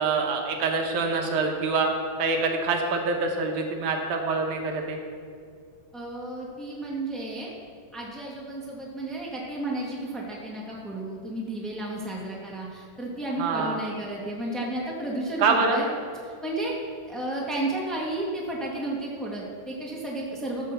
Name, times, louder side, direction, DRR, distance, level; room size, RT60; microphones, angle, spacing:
voice 1, 0.0-1.9 2.2-5.0 13.4-13.7 15.4-15.8, right 4 dB, 65° right, 2 dB, 2.3 m, -25 dB
voice 2, 5.9-7.5 7.9-15.9 16.2-16.7 17.1-20.7, right 1 dB, ahead, -4 dB, 0.4 m, -32 dB
15.0 x 5.8 x 6.9 m, 2.2 s
omnidirectional pair, 4.2 m